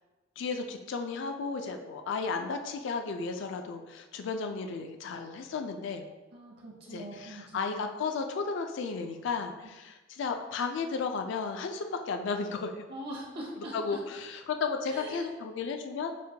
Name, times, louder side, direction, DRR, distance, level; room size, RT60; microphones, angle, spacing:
voice 1, 0.4-6.0 6.9-12.7 13.7-16.1, left 4 dB, 65° left, 6 dB, 0.3 m, -34 dB
voice 2, 6.3-7.8 12.9-14.0 14.9-15.3, right 1 dB, 55° right, -4 dB, 0.7 m, -42 dB
5.2 x 2.1 x 2.7 m, 1.1 s
head